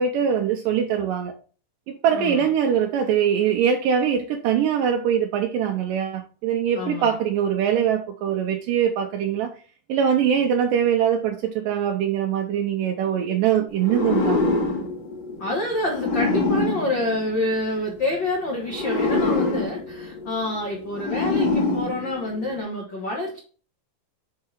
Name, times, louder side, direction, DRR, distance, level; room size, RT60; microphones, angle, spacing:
voice 1, 0.0-1.3 1.9-9.5 9.9-14.4, right 8 dB, 85° right, 2.0 m, -22 dB
voice 2, 2.1-2.5 6.7-7.2 15.4-23.4, left 1 dB, 65° left, 1.1 m, -27 dB
sound 1, 13.8-17.9 18.6-22.6, left 3 dB, 35° left, 2.1 m, -25 dB
6.6 x 4.7 x 4.4 m
omnidirectional pair, 4.5 m